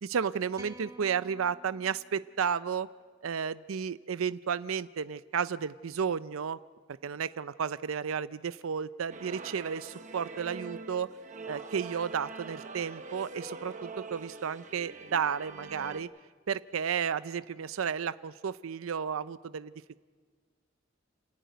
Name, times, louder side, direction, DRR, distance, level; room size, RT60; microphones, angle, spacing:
voice 1, 0.0-2.9 3.2-6.6 7.0-11.1 11.5-16.1 16.5-19.7, right 7 dB, 90° right, 15 dB, 0.5 m, -32 dB
sound 1, 0.5-2.9, right 1 dB, 20° right, 1.5 m, -52 dB
sound 2, 9.1-16.0, right 3 dB, 40° right, 1.0 m, -44 dB
28.5 x 10.5 x 9.3 m, 1.6 s
head